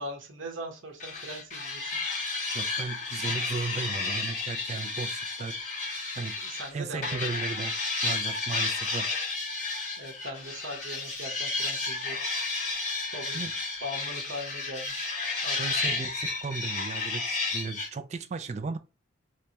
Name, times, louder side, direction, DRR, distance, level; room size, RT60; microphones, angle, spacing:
voice 1, 0.0-2.0 6.4-7.3 10.0-12.2 13.1-13.4 13.8-15.2 15.4-15.6, equal, 75° right, 0.9 m, -40 dB
sound 1, 1.0-6.7 7.0-17.9, left 3 dB, 40° left, 1.6 m, -32 dB
voice 2, 2.5-5.5 6.2-6.3 6.7-7.7 8.0-9.1 13.3-13.5 15.6-18.8, right 4 dB, 35° right, 0.3 m, -35 dB
3.3 x 3.0 x 2.8 m
head